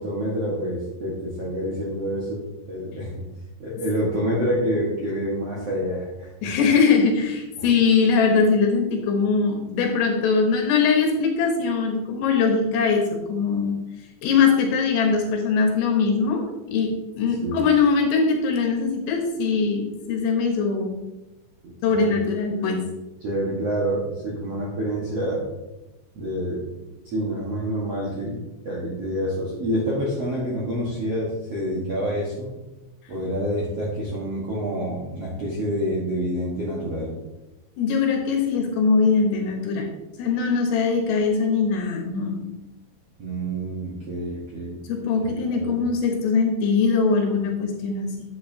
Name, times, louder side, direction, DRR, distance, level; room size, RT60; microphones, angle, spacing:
voice 1, 0.0-3.2 3.6-6.3 7.6-7.7 17.4-17.7 21.6-22.2 22.6-22.8 23.2-25.5 26.1-32.5 33.1-37.1 43.2-44.8 45.5-45.8, equal, 60° right, -6 dB, 1.6 m, -27 dB
voice 2, 6.4-13.8 14.2-21.0 21.8-22.8 37.8-39.9 40.2-42.5 44.9-48.1, left 5 dB, 70° left, 2 dB, 3.0 m, -21 dB
10.0 x 8.3 x 2.9 m, 0.99 s
omnidirectional pair, 5.5 m